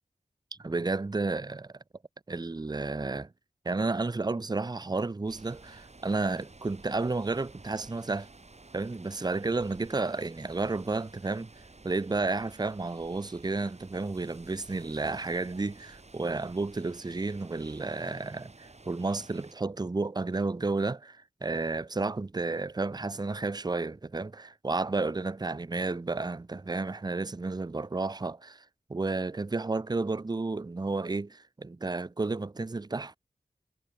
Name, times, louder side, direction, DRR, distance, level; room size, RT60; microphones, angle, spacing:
voice 1, 0.6-1.7 2.3-3.3 3.6-8.3 8.7-11.5 11.8-28.6 28.9-33.2, right 3 dB, 25° right, 0.6 m, -32 dB
sound 1, 5.3-19.5, right 3 dB, 40° right, 3.1 m, -53 dB
wide cardioid pair, 60°, 17 cm